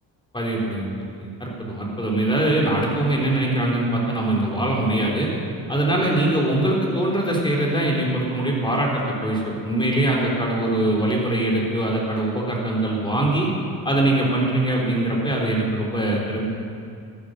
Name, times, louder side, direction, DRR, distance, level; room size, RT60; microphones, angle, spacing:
voice 1, 0.3-0.9 1.2-5.3 5.7-13.5 13.8-16.4, right 1 dB, 10° left, -2 dB, 3.7 m, -22 dB
14.0 x 12.0 x 6.6 m, 2.4 s
cardioid pair, 100°, 44 cm